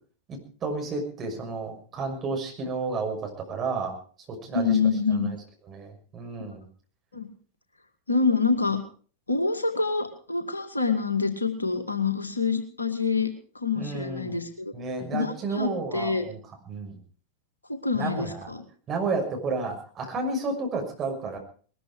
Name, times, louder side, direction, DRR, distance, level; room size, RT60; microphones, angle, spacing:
voice 1, 0.3-3.9 4.3-4.8 5.1-5.3 5.7-6.7 13.8-14.4 14.7-16.4 16.7-17.0 17.9-18.5 18.9-21.4, right 3 dB, 30° right, 2 dB, 6.1 m, -31 dB
voice 2, 4.5-5.3 7.1-7.3 8.1-8.8 9.3-13.3 13.5-14.7 15.1-16.3 17.7-18.6, left 4 dB, 80° left, 7 dB, 2.3 m, -26 dB
20.5 x 13.0 x 4.9 m, 0.43 s
figure-of-eight pair, 90°, 0 cm